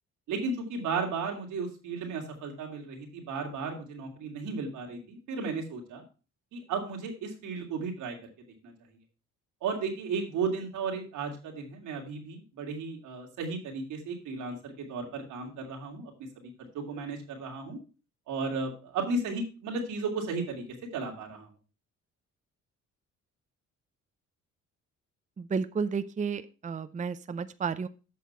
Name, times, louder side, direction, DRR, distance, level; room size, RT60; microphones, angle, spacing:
voice 1, 0.3-6.0 6.5-8.2 8.6-8.7 9.6-17.8 18.3-20.6 20.9-21.5, right 4 dB, 90° right, 1 dB, 2.9 m, -34 dB
voice 2, 25.4-27.9, right 5 dB, 25° right, 12 dB, 0.6 m, -32 dB
8.4 x 6.1 x 5.5 m, 0.34 s
cardioid pair, 90°, 30 cm